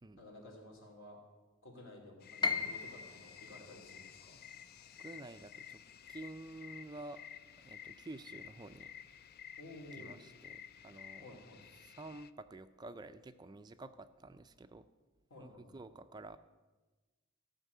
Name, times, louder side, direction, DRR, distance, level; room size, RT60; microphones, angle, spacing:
voice 1, 0.2-1.2 1.6-4.4 9.6-10.2 11.2-11.6 15.3-15.7, left 1 dB, 70° left, 0 dB, 3.0 m, -53 dB
sound 1, 2.2-12.3, left 9 dB, 50° left, 0.4 m, -53 dB
Piano, 2.4-8.4 8.7-9.8 10.2-10.3 11.1-11.4, left 5 dB, 20° left, 0.7 m, -42 dB
voice 2, 5.0-5.8 6.1-7.2 7.6-8.9 9.9-11.4 11.8-14.9 15.4-16.4, right 2 dB, 20° right, 11 dB, 0.4 m, -50 dB
14.5 x 5.7 x 8.2 m, 1.2 s
head